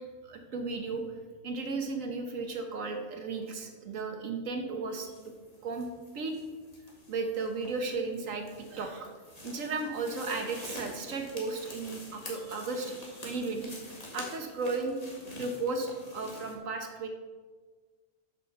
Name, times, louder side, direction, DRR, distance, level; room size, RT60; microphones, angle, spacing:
voice 1, 0.2-1.0 1.4-5.3 5.6-5.9 6.1-6.3 7.1-8.4 8.7-9.1 9.4-13.8 14.1-15.0 15.4-17.1, right 3 dB, 85° right, 4 dB, 1.5 m, -34 dB
sound 1, 5.0-16.5, left 2 dB, 30° left, 1.9 m, -47 dB
8.5 x 6.2 x 6.7 m, 1.4 s
omnidirectional pair, 1.3 m